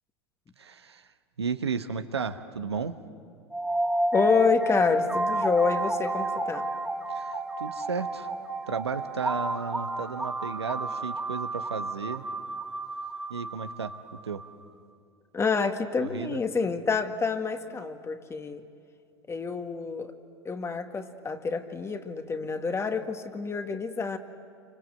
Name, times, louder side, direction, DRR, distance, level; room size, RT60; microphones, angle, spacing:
voice 1, 0.6-1.1 1.4-3.0 7.1-8.3 8.7-12.2 13.3-13.9 14.2-14.4 16.0-16.4, right 5 dB, 90° right, 8 dB, 1.2 m, -33 dB
sound 1, 3.5-14.5, right 1 dB, 5° right, 1.9 m, -31 dB
voice 2, 4.1-6.7 15.3-18.6 19.3-20.1 20.5-24.2, left 5 dB, 20° left, 8 dB, 1.8 m, -28 dB
30.0 x 25.5 x 7.7 m, 2.4 s
hypercardioid pair, 90°, 13 cm